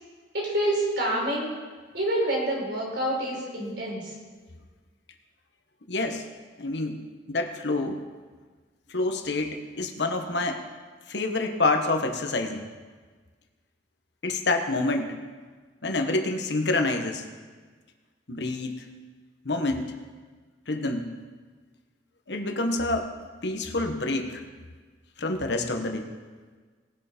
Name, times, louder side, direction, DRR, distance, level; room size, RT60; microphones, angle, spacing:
voice 1, 0.3-1.5 1.9-4.1, right 1 dB, 65° right, -3 dB, 4.4 m, -27 dB
voice 2, 5.9-6.2 6.6-7.0 7.3-8.0 8.9-10.6 11.1-12.6 14.2-15.2 15.8-17.2 18.3-18.9 19.4-20.0 20.7-21.1 22.3-23.1 23.4-24.4 25.2-26.1, left 2 dB, 75° left, 4 dB, 1.2 m, -27 dB
19.0 x 6.7 x 5.2 m, 1.4 s
head